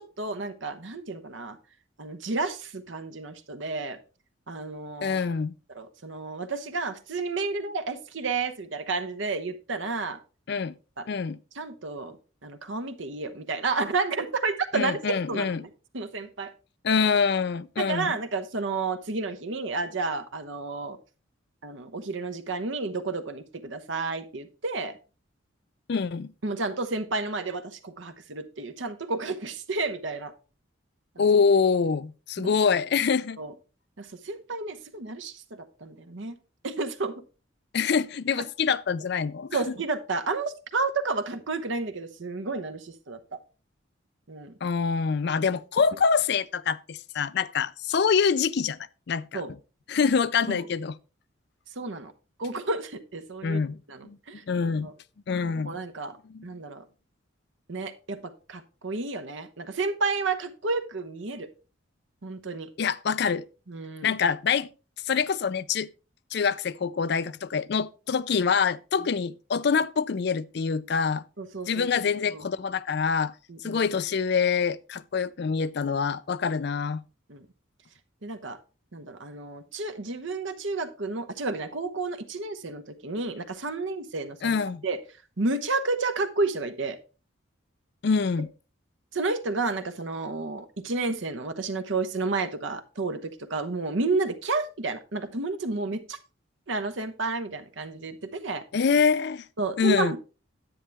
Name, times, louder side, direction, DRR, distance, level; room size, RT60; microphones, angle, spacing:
voice 1, 0.0-1.6 2.0-4.0 4.5-5.3 5.7-10.2 11.0-11.1 11.5-12.2 12.4-15.0 15.3-16.5 17.8-21.0 21.6-25.0 26.4-30.3 32.4-32.5 33.4-33.5 34.0-36.4 36.6-37.2 39.5-43.4 44.3-44.5 49.3-49.5 50.5-50.6 51.8-52.1 52.4-53.6 53.9-54.4 54.8-54.9 55.6-56.2 56.4-56.8 57.7-61.5 62.2-62.7 63.7-64.2 71.4-71.9 72.3-72.4 73.5-73.8 77.3-77.5 78.2-78.6 78.9-84.6 84.8-85.0 85.4-87.0 89.1-96.2 96.7-98.6 99.6-100.2, right 3 dB, 70° right, 1.0 m, -31 dB
voice 2, 5.0-5.5 10.5-10.7 11.1-11.4 14.7-15.6 16.8-18.2 25.9-26.3 31.2-33.4 37.7-39.6 44.6-48.8 49.1-49.4 49.9-51.0 53.4-53.8 54.0-54.2 54.5-54.9 55.3-55.8 56.3-56.4 62.8-63.4 64.0-64.7 65.1-65.9 66.3-71.2 71.7-73.3 73.6-77.0 84.4-84.8 88.0-88.5 98.7-99.4 99.8-100.1, left 5 dB, 55° left, 0.4 m, -25 dB
10.0 x 8.5 x 3.4 m
head